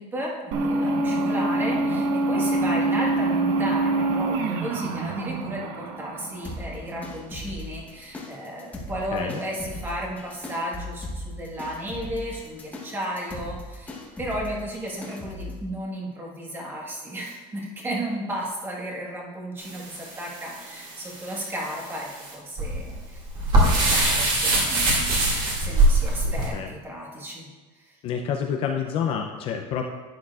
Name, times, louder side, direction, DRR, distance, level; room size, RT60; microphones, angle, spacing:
voice 1, 0.0-23.2 23.6-25.1 25.6-27.5 27.9-28.0, right 1 dB, 15° right, -2 dB, 1.4 m, -34 dB
sound 1, 0.5-6.9, right 2 dB, 60° right, 1.0 m, -25 dB
sound 2, 6.4-15.6, left 1 dB, 10° left, 1.0 m, -39 dB
sound 3, 19.6-26.5, right 2 dB, 30° right, 2.1 m, -23 dB
voice 2, 26.2-26.7 28.0-29.9, left 7 dB, 35° left, 3 dB, 0.5 m, -28 dB
11.5 x 9.1 x 2.4 m, 1.3 s
cardioid pair, 175°, 17 cm